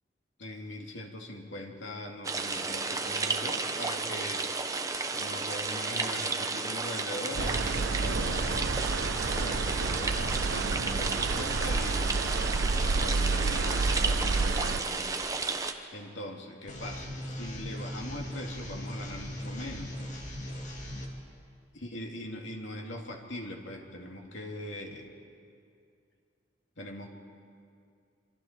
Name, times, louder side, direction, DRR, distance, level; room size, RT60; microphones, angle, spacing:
voice 1, 0.4-4.8 5.1-8.9 9.4-12.2 12.8-15.4 15.9-20.0 21.7-25.1 26.8-27.1, left 1 dB, 85° left, 1 dB, 2.5 m, -41 dB
sound 1, 2.2-15.7, right 4 dB, 20° right, 0.9 m, -32 dB
sound 2, 7.3-14.8, right 3 dB, 80° right, 0.7 m, -30 dB
sound 3, 16.7-21.1, equal, 40° left, 2.6 m, -39 dB
26.5 x 25.0 x 4.5 m, 2.4 s
head